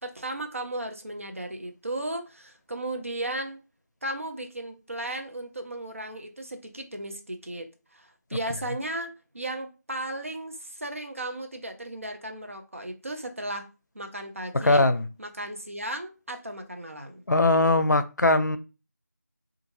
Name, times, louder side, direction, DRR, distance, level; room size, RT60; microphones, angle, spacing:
voice 1, 0.0-3.6 4.0-13.7 13.9-14.9 15.2-17.2, right 1 dB, 50° right, 0.6 m, -35 dB
voice 2, 14.5-15.0 17.3-18.6, left 2 dB, 90° left, 0.5 m, -21 dB
2.6 x 2.3 x 3.1 m
figure-of-eight pair, 175°, 9 cm